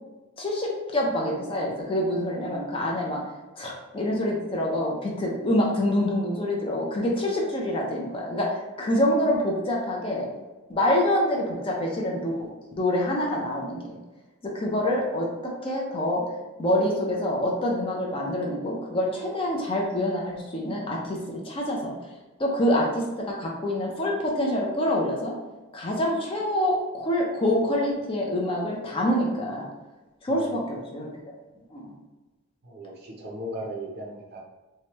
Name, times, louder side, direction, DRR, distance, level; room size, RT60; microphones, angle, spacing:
voice 1, 0.4-3.2 3.6-10.3 10.7-12.5 12.7-13.8 14.4-16.2 16.6-21.9 22.4-25.3 25.7-29.7 30.2-31.1 31.7-31.9, left 1 dB, 25° left, -2 dB, 0.4 m, -26 dB
voice 2, 30.3-30.8 32.6-34.4, equal, 45° right, -1 dB, 0.5 m, -38 dB
2.8 x 2.2 x 3.0 m, 1.1 s
head